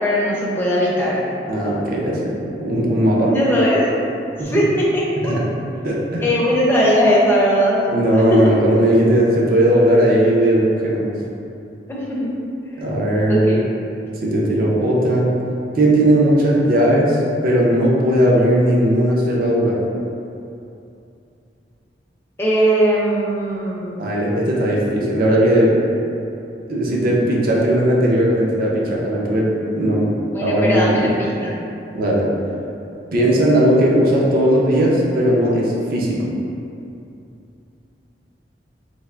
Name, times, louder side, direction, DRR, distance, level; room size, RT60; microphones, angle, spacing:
voice 1, 0.0-1.2 3.2-3.9 4.4-5.3 6.2-7.8 8.1-8.5 11.9-12.3 13.3-13.6 13.9-14.0 22.4-24.0 30.3-31.6, equal, 15° left, -6 dB, 0.4 m, -19 dB
voice 2, 1.5-2.3 2.6-3.3 5.2-5.4 5.8-6.2 7.9-11.1 12.8-13.6 14.2-15.2 15.7-17.2 17.4-19.8 24.0-25.8 26.7-30.1 30.4-31.1 31.9-32.3 33.1-36.3, right 1 dB, 55° right, -4 dB, 0.5 m, -17 dB
3.3 x 2.4 x 2.3 m, 2.7 s
head